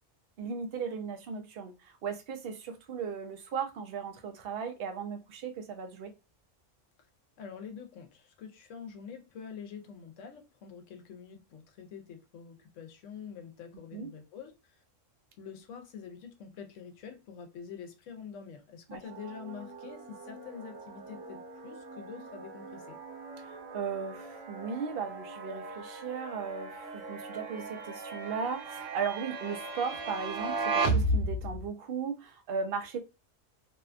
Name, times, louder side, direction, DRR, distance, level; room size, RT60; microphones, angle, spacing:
voice 1, 0.4-6.1 13.9-14.1 18.9-19.0 23.4-33.0, right 5 dB, 60° right, 0.7 m, -37 dB
voice 2, 7.4-14.8 15.4-23.0, left 7 dB, 75° left, 0.9 m, -46 dB
sound 1, 19.0-31.7, right 2 dB, 80° right, 1.0 m, -36 dB
2.7 x 2.2 x 2.4 m
omnidirectional pair, 1.3 m